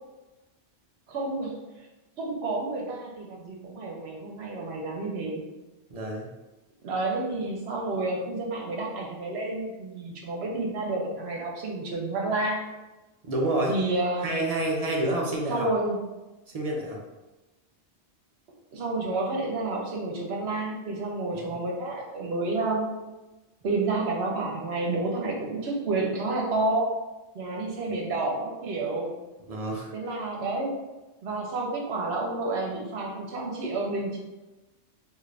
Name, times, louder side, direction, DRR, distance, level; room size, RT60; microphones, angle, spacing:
voice 1, 1.1-1.6 2.2-5.5 6.8-12.7 13.7-14.5 15.5-16.0 18.7-23.0 23.6-26.9 27.3-29.1 29.9-30.8 31.2-34.2, right 2 dB, 65° right, -1 dB, 0.9 m, -30 dB
voice 2, 5.9-6.3 13.2-13.8 14.2-15.7 16.5-17.0 21.3-21.5 29.5-29.9, right 1 dB, 45° right, -2 dB, 0.5 m, -28 dB
2.7 x 2.5 x 3.2 m, 1.1 s
omnidirectional pair, 1.2 m